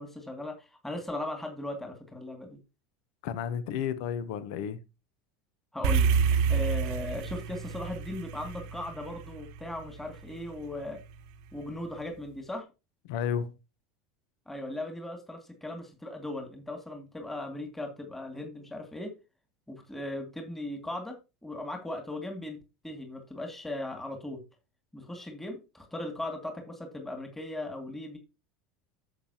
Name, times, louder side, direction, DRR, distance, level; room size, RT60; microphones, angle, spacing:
voice 1, 0.0-2.6 5.7-6.1 6.5-11.0 11.5-12.6 14.5-19.1 19.7-21.1 21.4-22.6 22.8-24.4 24.9-28.2, left 1 dB, 10° left, 2.3 m, -38 dB
voice 2, 3.2-4.8 13.1-13.6, left 8 dB, 65° left, 0.9 m, -32 dB
sound 1, 5.8-10.3, right 6 dB, 65° right, 1.0 m, -28 dB
11.0 x 7.3 x 2.9 m
hypercardioid pair, 80°, 3 cm